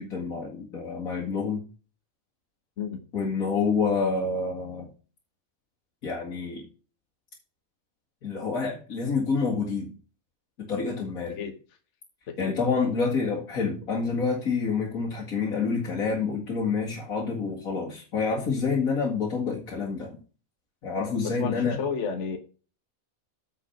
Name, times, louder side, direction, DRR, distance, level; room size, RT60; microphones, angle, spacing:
voice 1, 0.0-1.6 3.1-4.9 6.0-6.6 8.2-9.9 10.6-11.4 12.4-20.2 20.8-21.8, left 5 dB, 75° left, -3 dB, 2.4 m, -28 dB
voice 2, 12.3-12.6 21.4-22.4, left 6 dB, 55° left, 7 dB, 1.4 m, -32 dB
8.5 x 5.6 x 5.7 m, 0.36 s
omnidirectional pair, 1.5 m